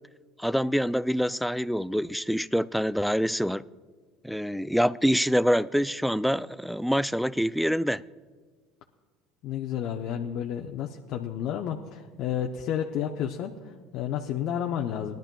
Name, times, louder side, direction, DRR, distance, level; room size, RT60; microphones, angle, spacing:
voice 1, 0.4-3.6 4.2-8.0, equal, ahead, 0.3 m, -26 dB
voice 2, 9.4-15.2, left 9 dB, 60° left, 0.7 m, -31 dB
20.5 x 12.0 x 2.3 m
hypercardioid pair, 75°, 0 cm